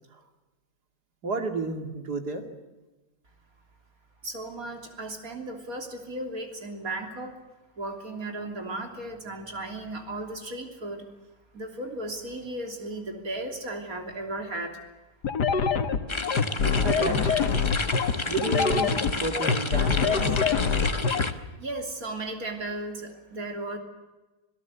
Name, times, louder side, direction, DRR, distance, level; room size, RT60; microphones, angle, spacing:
voice 1, 1.2-2.4 16.8-17.5 18.3-20.4, right 3 dB, 75° right, 5 dB, 3.0 m, -31 dB
voice 2, 4.2-7.3 7.8-11.1 11.5-14.8 21.1-23.8, right 2 dB, 60° right, 4 dB, 3.7 m, -35 dB
sound 1, 15.2-21.3, left 5 dB, 90° left, 2.0 m, -24 dB
sound 2, 16.1-21.3, left 2 dB, 20° left, 1.0 m, -31 dB
27.0 x 17.5 x 8.2 m, 1.1 s
omnidirectional pair, 1.7 m